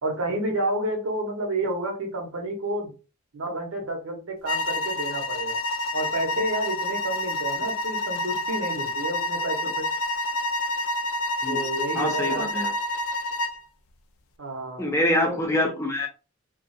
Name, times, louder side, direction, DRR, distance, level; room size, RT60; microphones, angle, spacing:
voice 1, 0.0-2.9 3.3-5.6 5.9-9.9 11.5-12.5 14.4-14.8 15.1-15.4, right 1 dB, 85° right, 3 dB, 0.9 m, -30 dB
sound 1, 4.5-13.6, left 2 dB, 80° left, 0.4 m, -28 dB
voice 2, 11.9-12.7 14.8-16.1, left 1 dB, 15° left, 2 dB, 0.4 m, -25 dB
2.4 x 2.3 x 2.6 m, 0.33 s
head